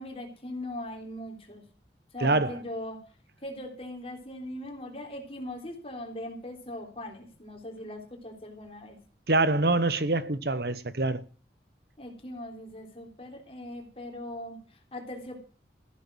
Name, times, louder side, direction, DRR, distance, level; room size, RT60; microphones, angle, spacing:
voice 1, 0.0-1.6 2.1-3.0 3.4-9.0 12.0-15.4, left 1 dB, 35° left, 3.7 m, -40 dB
voice 2, 2.2-2.5 9.3-11.2, right 2 dB, 65° right, 1.1 m, -25 dB
15.0 x 8.7 x 6.3 m
head